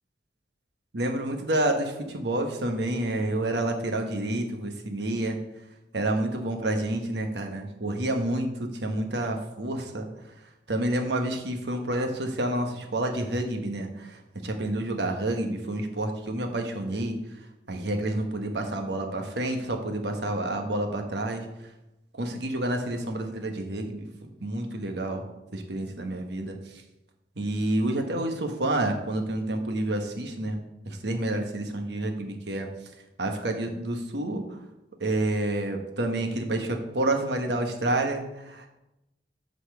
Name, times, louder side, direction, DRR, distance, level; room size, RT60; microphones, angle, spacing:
voice 1, 0.9-5.4 5.9-10.1 10.7-17.2 17.7-21.5 22.2-25.3 25.5-26.8 27.4-30.6 30.8-32.7 33.2-34.6 35.0-38.7, right 1 dB, 75° right, 4 dB, 1.1 m, -29 dB
8.2 x 4.2 x 6.7 m, 0.93 s
head